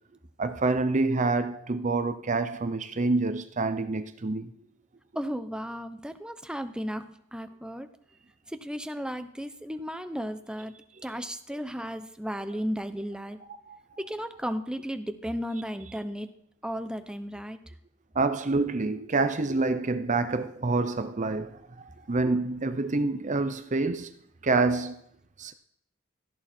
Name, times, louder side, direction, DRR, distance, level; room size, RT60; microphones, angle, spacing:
voice 1, 0.4-4.5 13.7-13.8 18.1-24.1 24.4-25.0 25.4-25.5, right 3 dB, 35° right, 0.7 m, -27 dB
voice 2, 5.1-7.0 7.3-7.9 8.5-10.7 11.0-13.4 14.1-16.3 16.6-17.6, equal, 5° right, 0.8 m, -34 dB
17.5 x 14.0 x 4.4 m
head